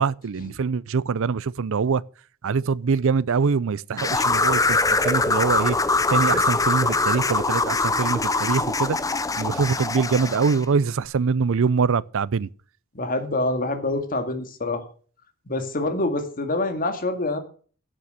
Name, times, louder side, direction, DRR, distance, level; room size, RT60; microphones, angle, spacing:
voice 1, 0.0-2.0 2.4-4.8 5.0-5.8 6.1-9.0 9.4-12.5, right 5 dB, 65° right, 0.5 m, -23 dB
sound 1, 4.0-10.6, left 3 dB, 15° left, 0.7 m, -23 dB
voice 2, 12.9-14.8 15.5-17.4, left 2 dB, 40° left, 2.2 m, -26 dB
12.0 x 8.8 x 6.5 m
head